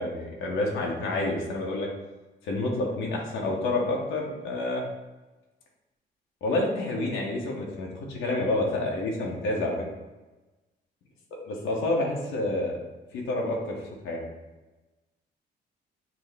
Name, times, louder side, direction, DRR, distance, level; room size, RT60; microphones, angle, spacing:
voice 1, 0.0-1.9 2.4-4.9 6.4-9.8 11.6-12.8 13.1-13.8 14.0-14.3, left 2 dB, 85° left, -1 dB, 0.8 m, -28 dB
5.9 x 2.0 x 3.3 m, 1.1 s
cardioid pair, 90°, 20 cm